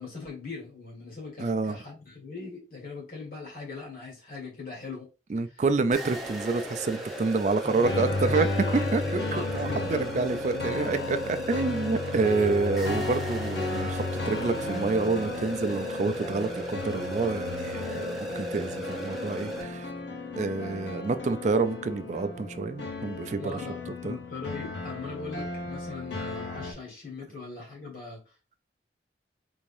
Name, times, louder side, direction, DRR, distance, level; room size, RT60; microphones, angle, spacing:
voice 1, 0.0-5.1 5.5-5.6 7.6-8.0 8.7-11.6 23.4-28.6, left 4 dB, 55° left, 1.7 m, -41 dB
voice 2, 1.4-1.8 5.3-8.5 8.9-9.2 9.5-19.9 20.4-23.4 24.0-24.2, right 3 dB, 40° right, 0.3 m, -28 dB
sound 1, 5.9-19.6, equal, ahead, 0.7 m, -36 dB
sound 2, 7.8-26.7, left 3 dB, 85° left, 0.8 m, -34 dB
3.5 x 3.3 x 2.6 m
head